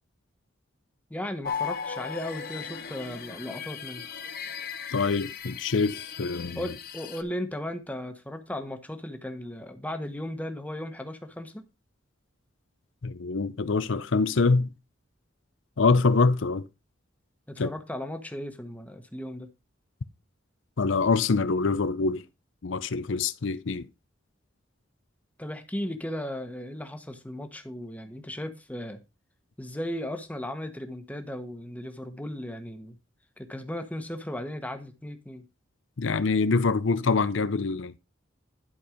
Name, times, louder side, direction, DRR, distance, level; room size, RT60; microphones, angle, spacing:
voice 1, 1.1-4.1 6.5-11.6 17.5-19.5 25.4-29.0 29.6-33.0 33.4-35.4, left 1 dB, 10° left, 1.1 m, -36 dB
sound 1, 1.4-7.2, left 6 dB, 50° left, 1.0 m, -37 dB
voice 2, 4.9-6.6 13.0-14.7 15.8-16.7 17.6-17.7 20.8-22.2 22.6-23.9 36.0-37.9, left 4 dB, 70° left, 0.6 m, -25 dB
11.5 x 4.4 x 5.0 m
head